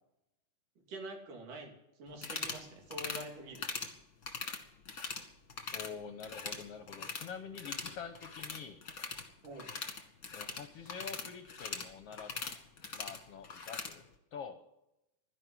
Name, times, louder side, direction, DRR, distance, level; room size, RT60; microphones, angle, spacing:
voice 1, 0.8-1.7 2.0-3.6 9.4-9.7, right 1 dB, 80° right, 2 dB, 4.4 m, -46 dB
sound 1, 2.1-2.6 2.9-3.2 3.5-3.9 4.2-5.2 5.5-5.9 6.2-7.3 7.5-13.9, left 4 dB, 35° left, 1.6 m, -41 dB
voice 2, 5.7-8.8 10.3-12.3 12.9-14.0 14.3-14.6, left 6 dB, 65° left, 8 dB, 1.6 m, -46 dB
12.5 x 11.0 x 9.4 m, 0.88 s
omnidirectional pair, 3.6 m